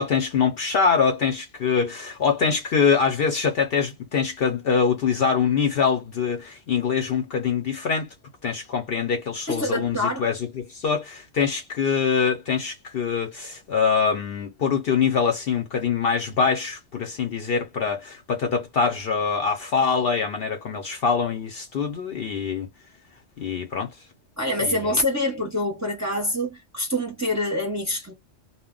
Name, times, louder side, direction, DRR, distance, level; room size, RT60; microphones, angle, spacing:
voice 1, 0.0-8.1 8.4-22.7 23.4-23.9 24.6-24.8, left 6 dB, 60° left, 0.7 m, -24 dB
voice 2, 9.5-10.3 24.4-28.1, left 1 dB, 15° right, 0.7 m, -26 dB
2.1 x 2.1 x 3.5 m
omnidirectional pair, 1.3 m